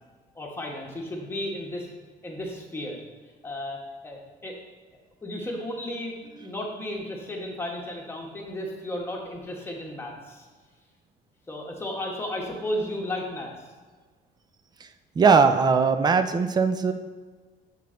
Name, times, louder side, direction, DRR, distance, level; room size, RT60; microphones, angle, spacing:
voice 1, 0.3-1.9 2.2-3.0 3.4-4.6 5.2-10.5 11.5-13.5, left 1 dB, 15° left, -1 dB, 1.2 m, -34 dB
voice 2, 15.2-16.9, right 5 dB, 25° right, 9 dB, 0.4 m, -20 dB
6.9 x 3.9 x 3.8 m, 1.4 s
cardioid pair, 110°, 17 cm